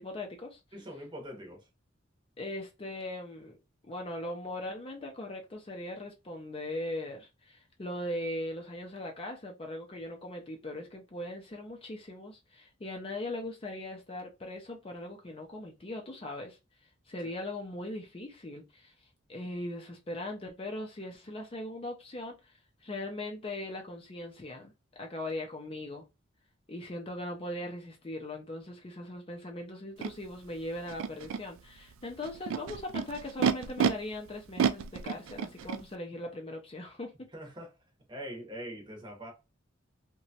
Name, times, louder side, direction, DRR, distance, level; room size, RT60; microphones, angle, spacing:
voice 1, 0.0-0.6 2.4-3.6 3.9-16.6 17.1-18.9 19.3-24.7 25.0-26.0 26.7-37.1, left 1 dB, 30° left, 0.5 m, -39 dB
voice 2, 0.7-1.7 17.2-17.3 37.3-37.7 38.1-39.3, equal, 25° right, 0.8 m, -43 dB
Animal, 30.0-30.1 30.9-31.4 32.2-33.9 34.6-35.8, right 7 dB, 85° right, 0.3 m, -29 dB
2.9 x 2.2 x 2.7 m
head